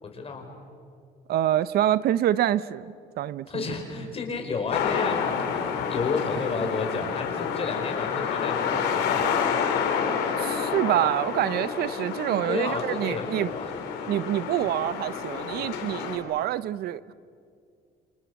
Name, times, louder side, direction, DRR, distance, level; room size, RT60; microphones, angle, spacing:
voice 1, 0.0-0.5 3.5-9.3 12.3-13.7, left 4 dB, 35° left, 3 dB, 5.1 m, -32 dB
voice 2, 1.3-3.7 10.4-13.5 14.1-17.1, right 12 dB, 70° right, 17 dB, 0.7 m, -26 dB
sound 1, 4.7-16.2, left 7 dB, 85° left, 3.4 m, -29 dB
28.0 x 27.0 x 7.1 m, 2.3 s
cardioid pair, 110°, 17 cm